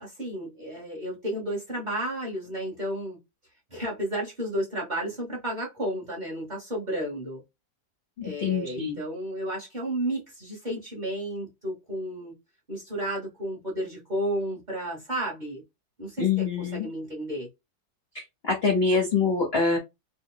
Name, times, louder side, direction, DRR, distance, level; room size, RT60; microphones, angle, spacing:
voice 1, 0.0-3.2 3.7-7.4 8.2-12.3 12.7-15.6 16.0-17.5, right 1 dB, 30° right, 0.9 m, -32 dB
voice 2, 8.2-9.0 16.2-16.9 18.1-19.8, left 5 dB, 55° left, 0.7 m, -25 dB
3.1 x 2.2 x 3.7 m
omnidirectional pair, 2.0 m